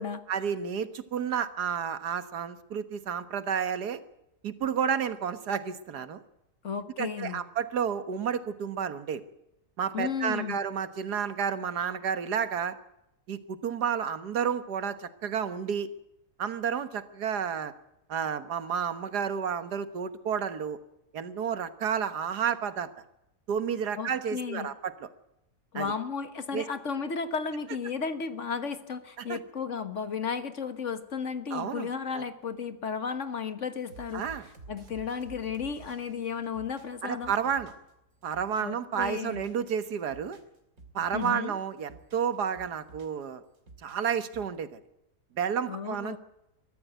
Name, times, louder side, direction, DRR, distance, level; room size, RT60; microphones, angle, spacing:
voice 1, 0.3-4.0 4.4-6.2 7.0-9.2 9.8-12.8 13.3-15.9 16.4-17.7 18.1-20.8 21.1-22.9 23.5-25.1 25.8-25.9 26.5-26.7 29.2-29.4 31.5-32.2 34.1-34.4 37.0-37.7 38.2-40.4 41.0-43.4 43.8-44.8 45.4-46.2, right 7 dB, 85° right, 12 dB, 1.9 m, -31 dB
voice 2, 6.6-7.4 9.9-10.6 24.0-24.7 25.7-34.2 34.7-37.3 38.6-39.5 41.1-41.6 45.7-46.2, left 6 dB, 50° left, 11 dB, 1.7 m, -34 dB
sound 1, 33.9-37.9 38.2-39.7 40.0-41.5 41.8-43.2 43.5-44.6, right 3 dB, 60° right, 3.4 m, -51 dB
22.0 x 14.0 x 9.2 m, 0.85 s
omnidirectional pair, 1.7 m